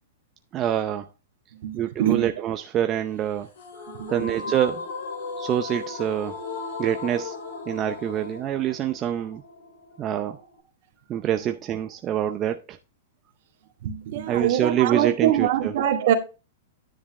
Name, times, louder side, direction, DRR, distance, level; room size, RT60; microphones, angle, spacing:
voice 1, 0.5-1.1 1.7-3.5 4.1-4.9 5.4-6.4 6.8-7.3 7.7-9.4 10.0-10.4 11.1-12.8 14.3-15.7, right 10 dB, 30° right, 0.6 m, -26 dB
voice 2, 1.6-2.3 4.0-4.3 13.8-16.1, right 11 dB, 60° right, 1.9 m, -24 dB
sound 1, 3.6-10.6, left 4 dB, 80° left, 5.5 m, -36 dB
10.0 x 7.2 x 3.2 m
hypercardioid pair, 130°, 0 cm